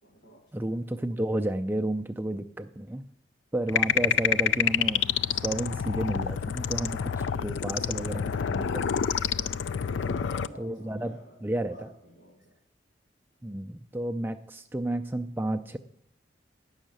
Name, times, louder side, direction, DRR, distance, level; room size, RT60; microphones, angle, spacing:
voice 1, 0.0-0.8 7.5-8.1 9.7-12.6, left 1 dB, 70° left, -1 dB, 1.9 m, -50 dB
voice 2, 0.5-3.0 3.5-5.0 5.3-9.0 10.6-11.9 13.4-15.8, right 1 dB, 10° right, 6 dB, 0.3 m, -32 dB
sound 1, 3.7-10.5, left 8 dB, 85° left, 0.4 m, -28 dB
10.5 x 6.4 x 9.0 m, 0.70 s
head